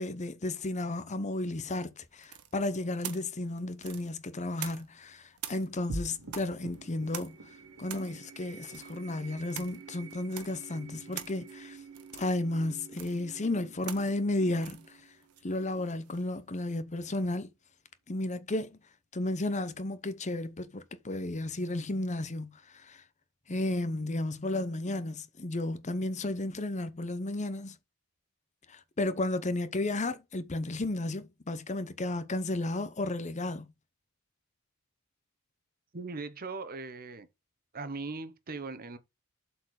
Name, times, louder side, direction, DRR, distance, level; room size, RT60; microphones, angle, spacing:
voice 1, 0.0-7.4 7.8-11.8 12.1-15.0 15.4-17.5 18.1-18.8 19.1-23.0 23.5-27.7 28.7-33.7, left 2 dB, 30° left, 0.8 m, -33 dB
sound 1, 2.2-5.1 5.4-16.3, right 10 dB, 90° right, 1.2 m, -46 dB
sound 2, 5.9-16.5, right 2 dB, 60° right, 1.9 m, -47 dB
voice 2, 35.9-37.3 37.7-39.0, right 3 dB, 40° right, 1.0 m, -39 dB
7.8 x 4.5 x 4.8 m
head